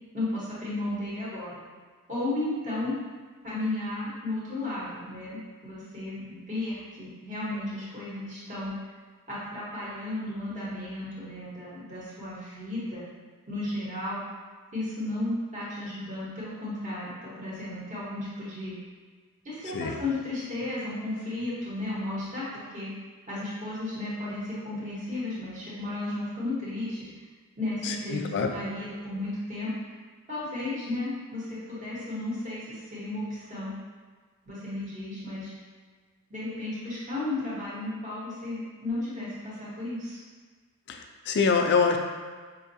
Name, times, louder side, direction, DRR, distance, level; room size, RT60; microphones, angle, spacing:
voice 1, 0.1-1.6 2.1-2.9 3.4-8.7 9.3-13.1 13.5-14.2 14.7-18.8 19.4-22.9 23.3-27.1 27.6-29.9 30.3-33.7 34.5-35.5 36.3-40.2, left 2 dB, 35° right, -9 dB, 1.1 m, -34 dB
voice 2, 28.1-28.5 41.3-42.0, left 5 dB, 50° left, 4 dB, 0.3 m, -23 dB
5.2 x 2.3 x 2.7 m, 1.5 s
head